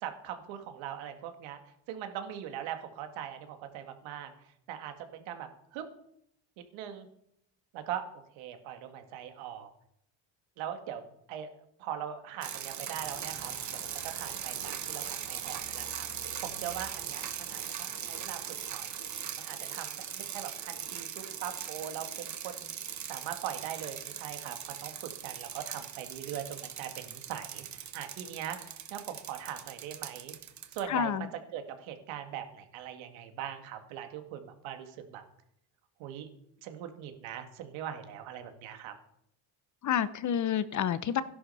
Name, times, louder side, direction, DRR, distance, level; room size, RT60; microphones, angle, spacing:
voice 1, 0.0-1.6 1.9-4.3 4.7-5.9 6.6-7.1 7.7-8.1 8.3-9.7 10.6-11.0 11.3-11.5 11.8-18.9 19.5-22.7 23.1-30.3 30.7-35.2 36.0-36.3 36.6-38.9, right 9 dB, 90° right, 7 dB, 2.0 m, -41 dB
sound 1, 12.4-30.8, right 9 dB, 40° right, 1.3 m, -40 dB
sound 2, 13.0-19.4, right 4 dB, 65° right, 3.7 m, -53 dB
voice 2, 30.9-31.3 39.8-41.2, left 9 dB, 40° left, 16 dB, 0.8 m, -29 dB
13.5 x 11.0 x 5.5 m, 0.74 s
cardioid pair, 120°, 46 cm